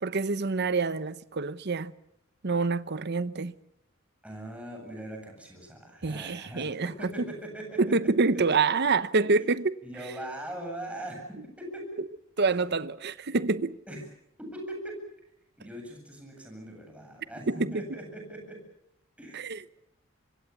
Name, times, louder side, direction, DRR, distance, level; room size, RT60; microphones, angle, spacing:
voice 1, 0.0-1.9 2.4-3.5 6.0-7.3 7.8-9.6 12.4-13.8 17.5-17.8 19.3-19.6, right 4 dB, 55° right, 0.9 m, -27 dB
voice 2, 4.2-7.9 9.8-11.9 13.9-14.0 14.4-15.0 15.6-18.6 19.2-19.5, right 1 dB, 5° right, 8.0 m, -40 dB
25.5 x 23.5 x 7.2 m
head